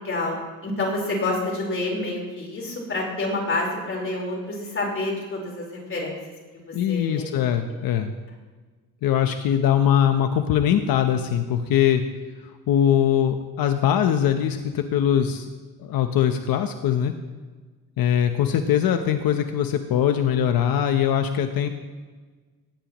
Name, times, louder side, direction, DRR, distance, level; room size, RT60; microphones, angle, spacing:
voice 1, 0.0-6.2 6.9-7.4, left 2 dB, 35° left, -1 dB, 4.4 m, -28 dB
voice 2, 6.7-8.1 9.0-12.0 12.7-15.5 15.8-17.1 18.0-21.7, left 9 dB, 85° left, 7 dB, 0.9 m, -21 dB
18.0 x 16.5 x 3.1 m, 1.4 s
cardioid pair, 145°, 34 cm